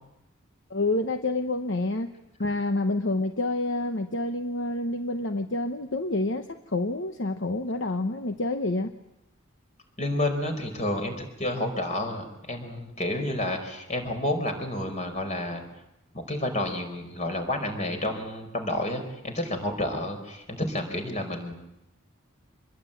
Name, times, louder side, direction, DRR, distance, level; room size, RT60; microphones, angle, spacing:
voice 1, 0.7-2.1 2.4-8.9, left 2 dB, 55° left, 7 dB, 1.1 m, -28 dB
voice 2, 10.0-15.6 16.1-21.5, left 1 dB, 35° left, 5 dB, 4.9 m, -30 dB
26.0 x 21.5 x 9.1 m, 0.88 s
head